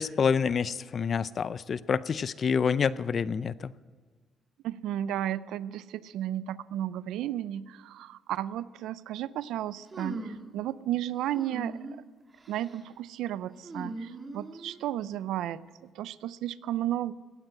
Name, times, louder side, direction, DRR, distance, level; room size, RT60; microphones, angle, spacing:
voice 1, 0.0-3.7, left 6 dB, 50° left, 17 dB, 0.5 m, -27 dB
voice 2, 4.6-11.8 12.5-17.1, right 12 dB, 85° right, 18 dB, 0.4 m, -33 dB
sound 1, 9.9-10.5 11.3-12.0 12.4-12.8 13.6-14.8, right 2 dB, 30° right, 1.9 m, -39 dB
17.5 x 9.2 x 7.7 m, 1.5 s
cardioid pair, 90°, 0 cm